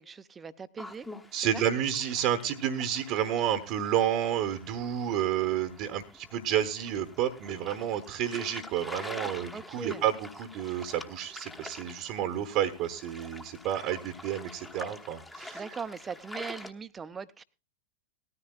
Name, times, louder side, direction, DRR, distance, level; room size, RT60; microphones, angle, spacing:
voice 1, 0.0-1.2 1.5-1.6 9.5-10.0 15.5-17.4, right 6 dB, 20° right, 0.7 m, -40 dB
sound 1, 0.8-16.7, left 2 dB, 10° left, 1.1 m, -46 dB
voice 2, 1.3-15.6, right 10 dB, 45° right, 1.0 m, -30 dB
19.0 x 14.0 x 2.3 m
figure-of-eight pair, 90°, 0 cm